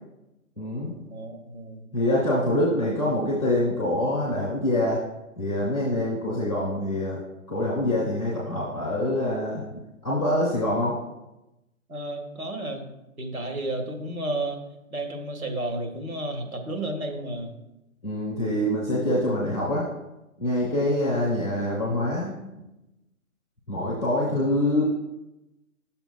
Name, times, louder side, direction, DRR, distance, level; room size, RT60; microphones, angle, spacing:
voice 1, 0.6-1.0 1.9-5.0 5.4-7.2 7.5-11.0 18.0-19.9 20.4-22.4 23.7-24.8, left 1 dB, 5° right, -12 dB, 0.5 m, -25 dB
voice 2, 1.1-1.9 11.9-12.8 13.2-14.6 14.9-17.5 24.2-24.5, right 1 dB, 75° right, 2 dB, 1.7 m, -32 dB
10.5 x 6.9 x 2.2 m, 0.94 s
figure-of-eight pair, 140°, 42 cm